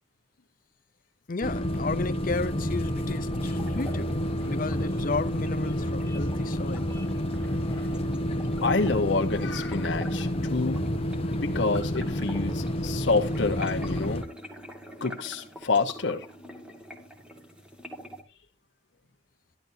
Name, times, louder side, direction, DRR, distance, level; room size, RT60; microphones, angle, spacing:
voice 1, 1.3-4.1 4.4-6.9, left 3 dB, 50° left, 0.7 m, -33 dB
sound 1, 1.4-14.2, equal, 35° left, 1.0 m, -29 dB
sound 2, 3.3-18.2, equal, 5° right, 1.9 m, -45 dB
sound 3, 3.5-13.1, equal, 10° left, 2.6 m, -50 dB
voice 2, 8.6-10.8 11.3-14.2 15.0-16.3, left 3 dB, 85° left, 1.2 m, -28 dB
12.0 x 12.0 x 2.8 m
head